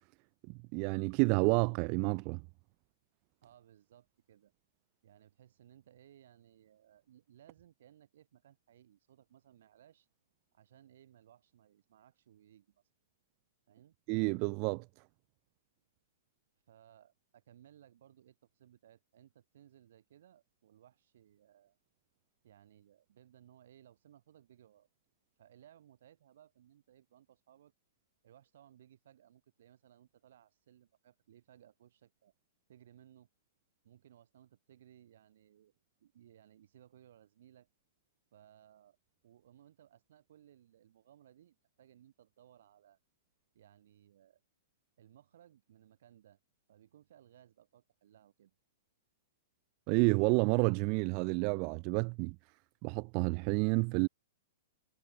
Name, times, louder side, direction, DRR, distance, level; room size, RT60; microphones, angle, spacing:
voice 1, 0.7-2.4 14.1-14.8 49.9-52.4 52.8-54.1, right 38 dB, 40° right, 0.4 m, -29 dB
voice 2, 3.4-4.5 5.0-10.1 10.5-12.8 13.7-14.0 16.7-21.8 22.4-24.9 25.4-27.7 28.2-32.3 32.7-33.3 33.8-35.7 36.0-37.7 38.3-39.0 39.2-43.0 43.5-44.4 45.0-46.4 46.7-48.5, right 11 dB, 65° right, 3.6 m, -62 dB
hypercardioid pair, 125°, 0 cm